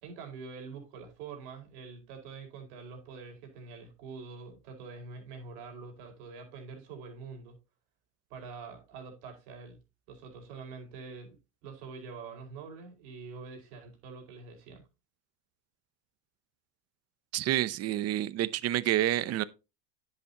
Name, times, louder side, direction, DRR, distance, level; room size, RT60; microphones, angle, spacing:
voice 1, 0.0-7.6 8.3-9.8 10.1-14.8, right 4 dB, 70° right, 5.1 m, -45 dB
voice 2, 17.3-19.4, right 13 dB, 35° right, 0.7 m, -28 dB
10.0 x 8.6 x 2.9 m
supercardioid pair, 120°, 46 cm